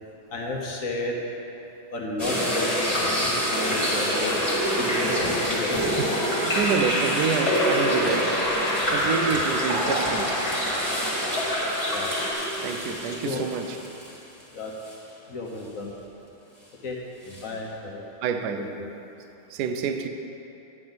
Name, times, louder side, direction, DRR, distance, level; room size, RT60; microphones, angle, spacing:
voice 1, 0.3-1.2 1.9-4.3 4.8-5.8 11.9-12.1 13.1-13.5 14.5-14.7 15.3-15.9 16.8-17.0 17.2-18.0, left 2 dB, 50° left, -1 dB, 1.1 m, -32 dB
Splash splatter / Drip / Trickle dribble, 2.2-12.3, equal, 30° left, 2.0 m, -29 dB
sound 1, 2.2-14.4 14.8-14.9 17.3-17.4, equal, 10° left, 1.7 m, -28 dB
voice 2, 5.8-10.4 12.6-13.8 18.2-18.7 19.5-20.1, right 6 dB, 85° right, 7 dB, 0.9 m, -28 dB
11.0 x 8.8 x 3.9 m, 2.9 s
omnidirectional pair, 2.4 m